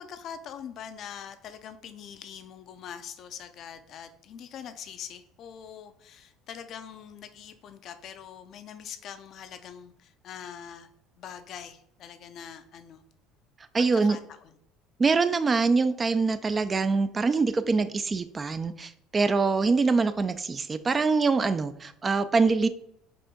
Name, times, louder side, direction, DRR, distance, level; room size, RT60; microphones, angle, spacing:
voice 1, 0.0-10.9 11.2-13.0 13.9-14.6, left 8 dB, 55° left, 10 dB, 0.4 m, -43 dB
voice 2, 13.7-14.2 15.0-22.7, right 4 dB, 30° right, 12 dB, 0.3 m, -24 dB
4.9 x 2.6 x 3.7 m, 0.72 s
supercardioid pair, 85°, 0 cm